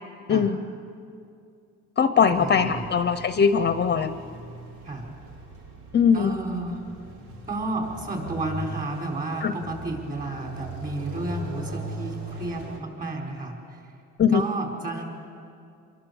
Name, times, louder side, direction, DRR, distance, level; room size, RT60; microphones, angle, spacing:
voice 1, 0.3-0.6 2.0-4.1 5.9-6.4 9.4-9.5 14.2-14.4, left 6 dB, 35° left, 11 dB, 0.8 m, -21 dB
sound 1, 2.3-12.8, equal, 90° right, 3.5 m, -40 dB
voice 2, 2.4-2.8 4.8-5.1 6.1-6.9 7.5-13.9 14.3-15.0, right 2 dB, 30° right, 0 dB, 5.3 m, -32 dB
26.5 x 22.0 x 7.2 m, 2.4 s
cardioid pair, 125°, 31 cm